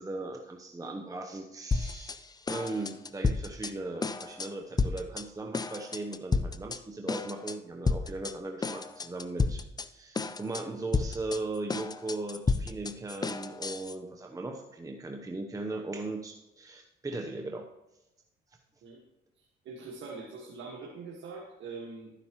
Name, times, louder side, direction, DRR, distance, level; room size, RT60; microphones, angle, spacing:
voice 1, 0.0-17.7, right 2 dB, 15° right, 3 dB, 0.8 m, -38 dB
sound 1, 1.7-2.2 2.5-3.7 4.0-4.5 4.8-5.2 5.5-6.8 7.1-7.5 7.9-8.3 8.6-9.9 10.1-10.6 10.9-13.9, left 4 dB, 20° left, 0.5 m, -31 dB
voice 2, 19.7-22.1, right 4 dB, 70° right, -2 dB, 1.6 m, -43 dB
12.5 x 9.9 x 3.0 m, 0.94 s
cardioid pair, 90°, 20 cm